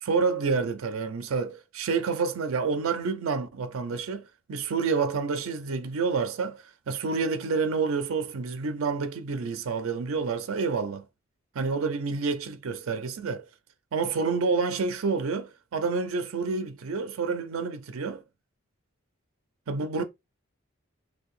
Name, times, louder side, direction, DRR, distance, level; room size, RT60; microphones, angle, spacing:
voice 1, 0.0-11.0 11.6-13.4 13.9-18.2 19.7-20.0, right 4 dB, 85° right, 0.4 m, -28 dB
2.7 x 2.2 x 4.1 m
head